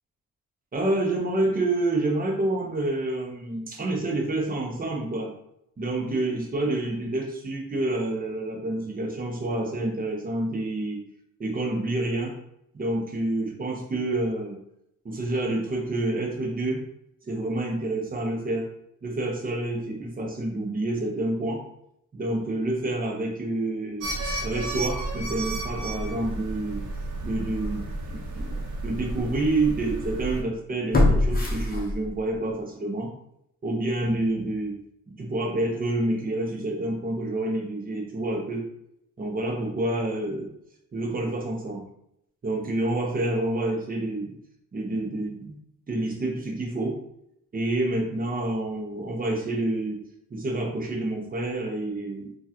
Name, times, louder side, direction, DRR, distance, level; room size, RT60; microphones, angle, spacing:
voice 1, 0.7-5.3 5.8-11.0 11.4-12.4 12.7-14.6 15.0-16.8 17.2-18.7 19.0-21.6 22.1-24.1 24.4-26.8 27.2-33.1 33.6-34.8 35.1-38.6 39.2-40.5 40.9-41.8 42.4-44.4 44.7-45.6 45.9-47.0 47.5-50.0 50.3-52.4, right 2 dB, 25° right, 1 dB, 0.8 m, -28 dB
sound 1, 24.0-30.4, right 2 dB, 60° right, 0.8 m, -32 dB
sound 2, 27.6-27.8 28.3-28.4 30.9-32.4 32.7-32.8, left 2 dB, 25° left, 0.8 m, -23 dB
3.8 x 2.4 x 2.8 m, 0.76 s
cardioid pair, 110°, 33 cm